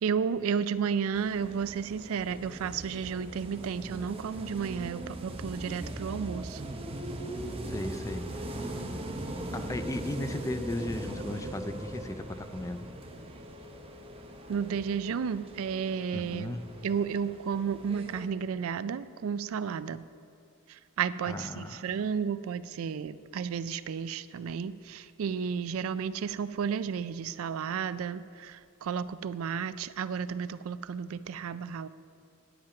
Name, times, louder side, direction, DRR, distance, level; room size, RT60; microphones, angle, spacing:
voice 1, 0.0-6.6 14.5-16.6 16.8-20.1 20.7-31.9, right 6 dB, 70° right, 15 dB, 0.4 m, -32 dB
sound 1, 1.1-18.3, right 1 dB, 25° right, 0.8 m, -40 dB
voice 2, 7.7-8.5 9.5-12.9 16.1-16.8 21.3-21.9, left 1 dB, 15° left, 9 dB, 0.4 m, -36 dB
10.5 x 8.8 x 5.8 m, 2.4 s
head